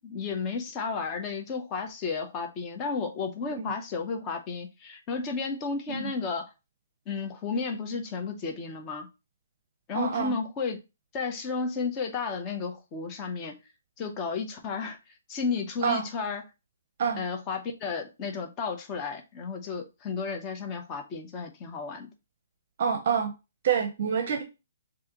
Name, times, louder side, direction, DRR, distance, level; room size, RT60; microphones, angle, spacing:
voice 1, 0.0-6.5 7.1-9.1 9.9-10.8 11.1-13.6 14.0-15.0 15.3-16.4 17.2-22.1, left 4 dB, 20° left, 0.6 m, -33 dB
voice 2, 9.9-10.3 15.8-16.1 17.0-17.2 22.8-23.3 23.6-24.4, right 7 dB, 45° right, 0.6 m, -27 dB
6.2 x 2.5 x 2.9 m
hypercardioid pair, 170°, 0 cm